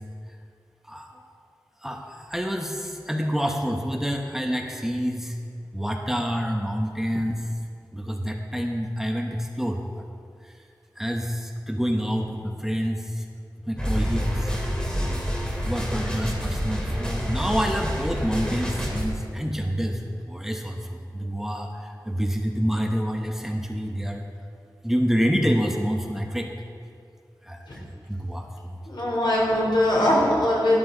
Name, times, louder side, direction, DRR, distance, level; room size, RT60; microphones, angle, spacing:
voice 1, 0.9-1.2 1.8-5.4 5.7-7.4 7.9-9.8 10.4-10.5 11.0-13.2 13.7-14.5 15.6-20.0 20.3-24.2 24.8-26.5 27.4-28.8, equal, 5° right, 1 dB, 1.1 m, -27 dB
sound 1, 13.8-19.1, equal, 10° left, 2.5 m, -28 dB
voice 2, 28.9-30.8, left 1 dB, 80° left, -4 dB, 3.7 m, -21 dB
13.0 x 12.0 x 4.0 m, 2.3 s
wide cardioid pair, 60°, 8 cm